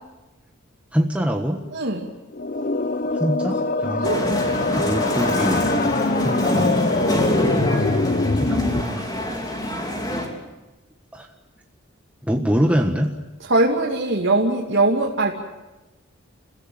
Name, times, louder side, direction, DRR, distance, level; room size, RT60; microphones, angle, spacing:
voice 1, 0.9-1.6 3.1-4.1 4.8-5.7 6.2-6.8 7.6-8.1 8.4-9.1 11.1-11.3 12.2-13.1, equal, 5° right, 2 dB, 1.4 m, -24 dB
sound 1, 2.3-8.8, left 2 dB, 45° left, 1.0 m, -23 dB
sound 2, 4.0-10.3, equal, 20° left, 3.7 m, -26 dB
voice 2, 4.0-4.4 13.5-15.3, right 2 dB, 65° right, -2 dB, 2.7 m, -21 dB
30.0 x 16.5 x 8.9 m, 1.1 s
head